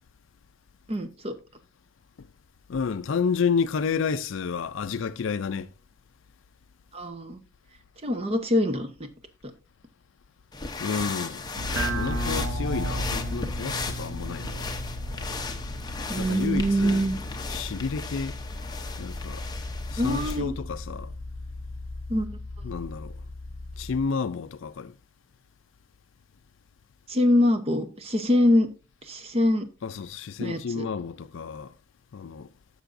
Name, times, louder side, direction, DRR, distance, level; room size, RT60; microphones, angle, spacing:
voice 1, 0.9-1.3 6.9-7.4 8.0-8.9 16.1-17.1 20.0-20.5 22.1-22.3 27.1-28.7 29.1-29.7 30.4-30.9, left 1 dB, 30° right, 0.9 m, -24 dB
voice 2, 2.7-5.7 10.8-11.4 11.9-14.7 16.2-17.1 17.5-18.3 19.0-19.4 19.9-21.1 22.6-23.1 23.8-24.9 29.8-31.7 32.1-32.5, left 5 dB, 60° left, 0.4 m, -30 dB
sound 1, 10.5-20.4, left 4 dB, 20° left, 0.7 m, -36 dB
sound 2, 11.6-24.0, equal, 80° right, 1.7 m, -34 dB
11.5 x 6.7 x 2.6 m
head